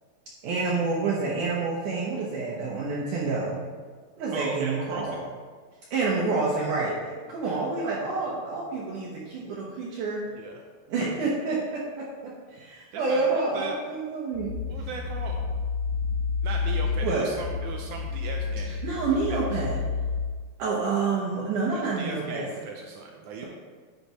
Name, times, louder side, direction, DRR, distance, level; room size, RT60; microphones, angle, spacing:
voice 1, 0.4-3.6 4.2-5.2 5.9-7.0 7.3-10.2 10.9-14.6 17.0-17.3 18.8-19.8 20.6-22.5, right 3 dB, 65° right, -5 dB, 2.3 m, -28 dB
voice 2, 4.3-5.2 10.4-10.6 12.9-13.7 14.7-15.5 16.4-19.6 21.7-23.5, right 4 dB, 85° right, 1 dB, 1.7 m, -38 dB
sound 1, 14.3-20.2, left 5 dB, 55° left, 2.5 m, -30 dB
11.0 x 8.3 x 3.0 m, 1.5 s
omnidirectional pair, 4.3 m